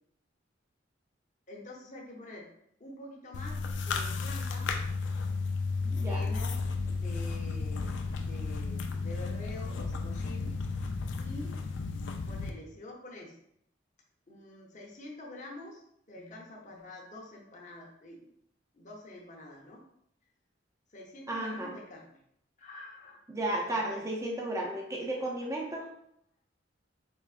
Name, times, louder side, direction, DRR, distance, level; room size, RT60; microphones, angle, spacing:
voice 1, 1.5-2.5 2.8-4.7 5.8-6.6 6.9-10.6 11.2-11.5 12.2-13.4 14.3-18.3 18.7-19.8 20.9-22.2 22.6-23.2 23.7-24.0, left 1 dB, 40° left, -2 dB, 0.7 m, -47 dB
sound 1, 3.3-12.5, left 4 dB, 70° left, 0.4 m, -33 dB
voice 2, 5.9-6.3 16.2-16.4 21.3-21.7 23.3-25.9, right 1 dB, 15° right, -1 dB, 0.5 m, -34 dB
4.6 x 3.0 x 2.4 m, 0.72 s
head